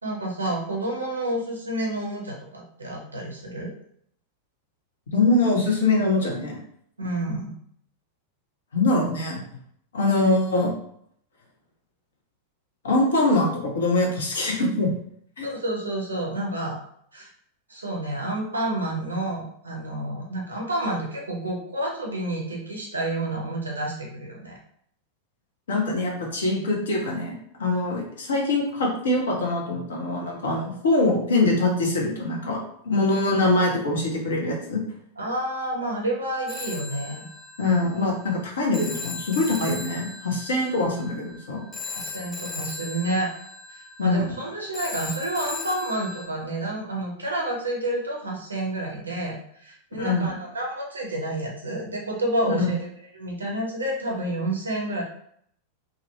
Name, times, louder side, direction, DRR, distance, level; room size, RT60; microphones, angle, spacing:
voice 1, 0.0-3.7 7.0-7.5 15.4-16.8 17.1-17.3 17.7-24.5 35.2-37.3 37.6-37.8 41.9-43.3 43.7-52.8 53.1-55.0, right 1 dB, 75° right, -1 dB, 0.7 m, -29 dB
voice 2, 5.1-6.6 8.7-9.4 9.9-10.7 12.8-14.9 15.4-15.5 25.7-32.6 32.8-34.8 37.6-41.7 44.0-44.3 50.0-50.4 52.5-52.7, left 2 dB, 65° left, -1 dB, 0.7 m, -23 dB
Telephone, 36.5-46.3, left 3 dB, 10° left, 0.4 m, -38 dB
2.5 x 2.1 x 2.9 m, 0.67 s
figure-of-eight pair, 90°, 0 cm